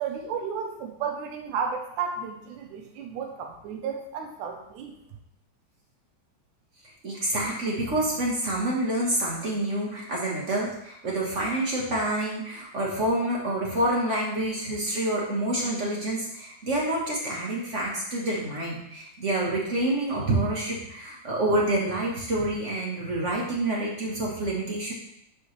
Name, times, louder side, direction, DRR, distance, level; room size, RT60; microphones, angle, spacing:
voice 1, 0.0-5.0, right 6 dB, 75° right, 3 dB, 2.4 m, -33 dB
voice 2, 6.8-24.9, right 1 dB, 50° right, -3 dB, 0.8 m, -27 dB
12.5 x 4.9 x 3.3 m, 0.77 s
omnidirectional pair, 3.7 m